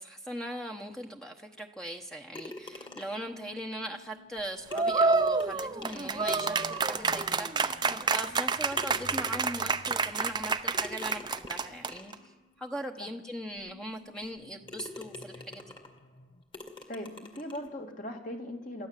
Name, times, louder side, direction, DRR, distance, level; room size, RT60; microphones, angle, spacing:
voice 1, 0.0-15.7, right 1 dB, 5° left, 2 dB, 1.1 m, -40 dB
sound 1, 2.3-3.3 4.4-4.5 4.7-7.3 7.9-8.0 8.7-9.7 10.7-12.3 13.0-13.1 13.6-13.7 14.2-14.4 14.7-16.0 16.5-17.7, left 2 dB, 30° left, 2.3 m, -45 dB
sound 2, 2.7-16.4, left 2 dB, 65° left, 1.3 m, -55 dB
sound 3, 4.7-12.1, right 4 dB, 25° right, 0.7 m, -28 dB
voice 2, 16.9-18.9, left 1 dB, 50° left, 3 dB, 2.7 m, -39 dB
28.0 x 14.0 x 7.6 m, 1.1 s
head